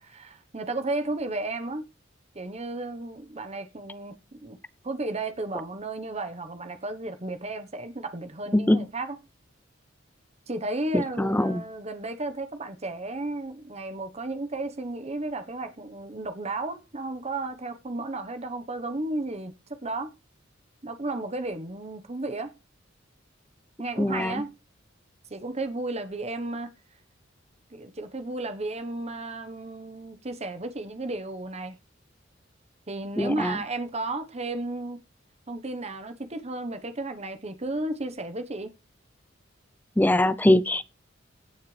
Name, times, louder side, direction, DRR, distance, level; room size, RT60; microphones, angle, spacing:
voice 1, 0.0-1.8 2.3-4.6 4.8-9.2 10.5-20.1 20.8-22.5 23.8-24.5 25.3-26.7 27.7-31.8 32.9-35.0 35.5-38.7, right 2 dB, 35° right, 1.1 m, -33 dB
voice 2, 8.5-8.9 10.9-11.6 24.0-24.4 33.2-33.6 40.0-40.8, left 1 dB, 10° left, 0.5 m, -22 dB
17.0 x 6.5 x 3.3 m
head